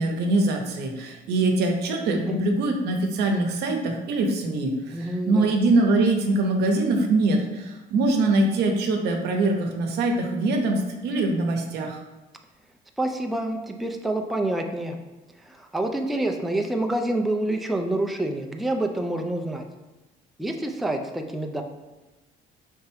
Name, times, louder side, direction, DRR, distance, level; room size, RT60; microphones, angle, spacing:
voice 1, 0.0-12.0, right 2 dB, 80° right, 3 dB, 0.8 m, -23 dB
voice 2, 2.1-2.4 4.9-5.5 13.0-15.0 15.5-19.6 20.4-21.6, right 1 dB, ahead, 3 dB, 0.4 m, -27 dB
4.3 x 3.5 x 3.4 m, 1.1 s
cardioid pair, 110°, 17 cm